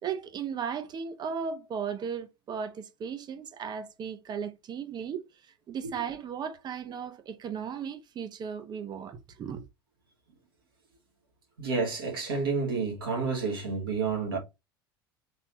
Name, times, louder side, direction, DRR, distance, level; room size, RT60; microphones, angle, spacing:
voice 1, 0.0-9.6, right 7 dB, 35° right, 1.1 m, -36 dB
voice 2, 11.6-14.4, right 4 dB, 75° right, 2.4 m, -29 dB
4.4 x 3.4 x 3.1 m
figure-of-eight pair, 75°, 12 cm